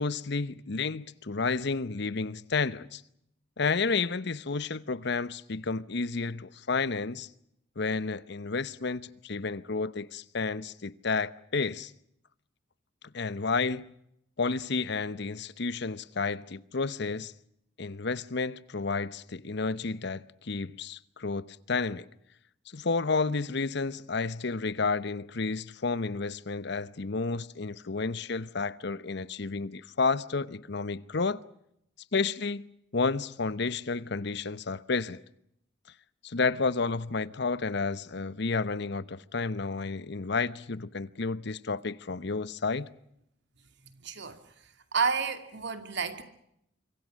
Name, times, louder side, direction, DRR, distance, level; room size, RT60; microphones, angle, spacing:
voice 1, 0.0-3.0 3.6-7.3 7.8-11.9 13.1-13.9 14.4-17.3 17.8-22.1 22.7-31.4 32.1-32.7 32.9-35.2 36.2-42.9, left 4 dB, 60° left, 0.9 m, -31 dB
voice 2, 44.0-44.4 44.9-46.2, right 5 dB, 65° right, 2.5 m, -30 dB
26.0 x 24.5 x 6.4 m
head